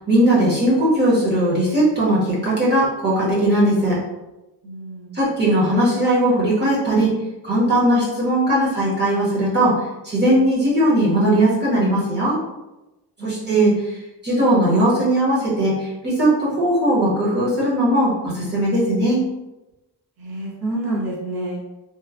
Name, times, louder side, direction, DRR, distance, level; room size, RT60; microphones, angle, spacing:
voice 1, 0.1-4.0 5.1-7.1 7.4-9.8 10.0-12.4 13.2-13.9 14.2-19.3, right 1 dB, 25° right, -8 dB, 1.0 m, -18 dB
voice 2, 4.6-5.2 13.2-13.7 20.2-21.6, right 2 dB, 65° right, -4 dB, 0.9 m, -28 dB
3.0 x 2.2 x 2.4 m, 1.0 s
wide cardioid pair, 165°, 40 cm